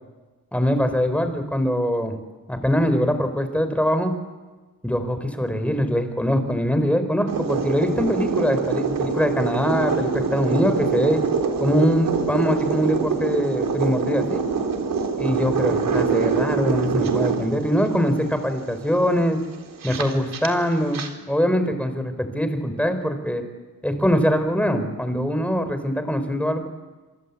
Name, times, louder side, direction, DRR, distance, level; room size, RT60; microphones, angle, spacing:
voice 1, 0.5-2.1 2.5-4.1 4.8-11.2 11.6-14.4 15.1-19.4 19.8-21.0 21.3-23.4 23.8-26.7, equal, 5° left, 8 dB, 4.4 m, -23 dB
sound 1, 7.3-21.1, right 5 dB, 70° right, 3.9 m, -25 dB
26.5 x 26.0 x 8.5 m, 1.3 s
cardioid pair, 100°, 35 cm